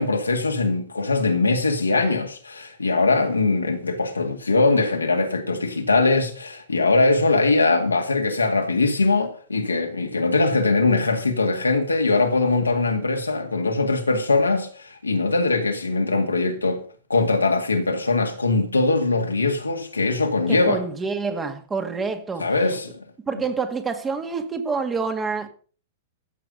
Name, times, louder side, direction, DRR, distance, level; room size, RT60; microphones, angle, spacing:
voice 1, 0.0-16.8 17.1-20.8 22.4-23.0, left 3 dB, 80° left, 2.2 m, -21 dB
voice 2, 20.5-22.5 23.3-25.5, right 4 dB, 15° right, 1.8 m, -27 dB
14.5 x 7.8 x 5.3 m
figure-of-eight pair, 100°, 0 cm